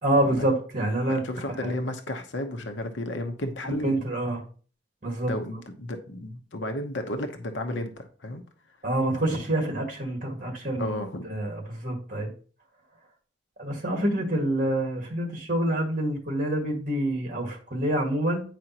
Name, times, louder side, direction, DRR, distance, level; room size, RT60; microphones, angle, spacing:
voice 1, 0.0-1.2 1.6-1.7 3.8-4.4 5.0-5.3 8.8-10.9 11.2-12.3 13.6-18.4, right 1 dB, 45° right, 1 dB, 1.8 m, -27 dB
voice 2, 1.2-4.1 5.3-8.4 10.8-11.3, left 1 dB, 90° left, 5 dB, 0.9 m, -33 dB
9.2 x 5.0 x 2.9 m, 0.40 s
head